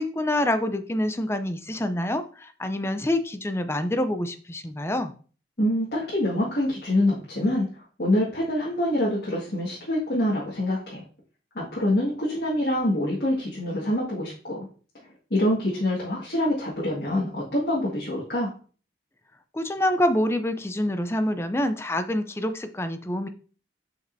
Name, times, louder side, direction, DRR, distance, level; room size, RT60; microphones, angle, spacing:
voice 1, 0.0-5.1 19.5-23.3, left 1 dB, 15° left, 9 dB, 0.5 m, -26 dB
voice 2, 5.6-11.0 11.6-14.7 15.3-18.5, left 1 dB, 65° left, -6 dB, 1.9 m, -25 dB
7.6 x 5.2 x 2.7 m, 0.40 s
head